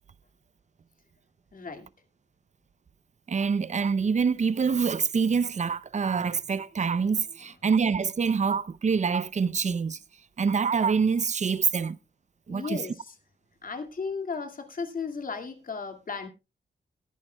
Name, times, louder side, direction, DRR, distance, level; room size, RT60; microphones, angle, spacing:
voice 1, 1.5-1.9 12.5-13.2 13.6-16.3, left 5 dB, 45° left, 2.2 m, -35 dB
voice 2, 3.3-10.0 10.4-12.0 12.5-12.8, right 5 dB, 40° right, 0.6 m, -25 dB
19.0 x 10.5 x 2.3 m
wide cardioid pair, 110°, 19 cm